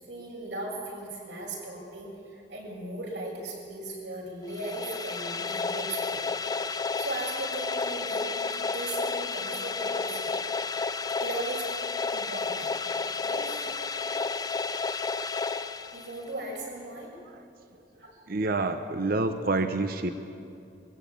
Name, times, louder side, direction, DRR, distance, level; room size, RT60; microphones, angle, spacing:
voice 1, 0.0-6.4 6.6-8.3 8.7-10.5 11.2-11.7 12.1-13.7 15.9-17.1 17.9-18.3, right 2 dB, 80° right, -3 dB, 6.4 m, -38 dB
sound 1, 4.5-16.4, left 4 dB, 20° left, 0.5 m, -31 dB
voice 2, 18.3-20.1, right 3 dB, 55° right, 8 dB, 0.8 m, -28 dB
22.5 x 15.5 x 8.5 m, 2.5 s
head